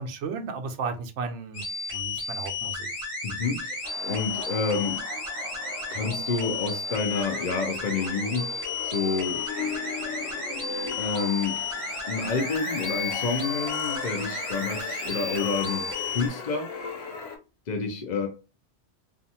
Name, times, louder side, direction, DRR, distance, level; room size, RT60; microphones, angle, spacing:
voice 1, 0.0-1.6 1.9-2.9, right 5 dB, 70° right, 6 dB, 0.9 m, -34 dB
sound 1, 1.5-16.3, left 3 dB, 30° left, 1.1 m, -33 dB
voice 2, 3.2-5.0 5.9-9.5 11.0-11.6 12.1-16.7 17.7-18.3, left 4 dB, 50° left, 2 dB, 0.5 m, -29 dB
sound 2, 3.8-17.4, left 5 dB, 80° left, 1.1 m, -37 dB
2.5 x 2.4 x 2.7 m, 0.32 s
omnidirectional pair, 1.3 m